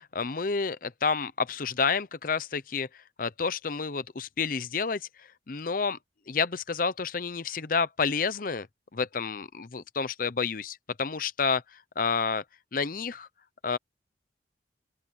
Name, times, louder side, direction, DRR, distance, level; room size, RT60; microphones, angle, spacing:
voice 1, 0.0-6.0 6.3-8.7 8.9-12.4 12.7-13.3 13.6-13.8, left 5 dB, 50° left, 0.7 m, -30 dB
open air
head